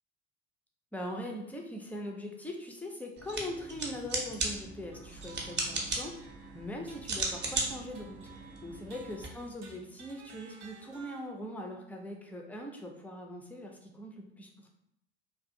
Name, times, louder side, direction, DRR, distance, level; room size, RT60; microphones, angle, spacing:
voice 1, 0.9-6.1 6.5-8.2 8.6-14.5, left 1 dB, 5° left, 1 dB, 0.4 m, -41 dB
sound 1, 3.2-9.3, right 2 dB, 35° right, 0.7 m, -37 dB
sound 2, 4.9-11.3, right 4 dB, 80° right, 0.6 m, -53 dB
2.5 x 2.4 x 2.6 m, 0.76 s
hypercardioid pair, 70°, 34 cm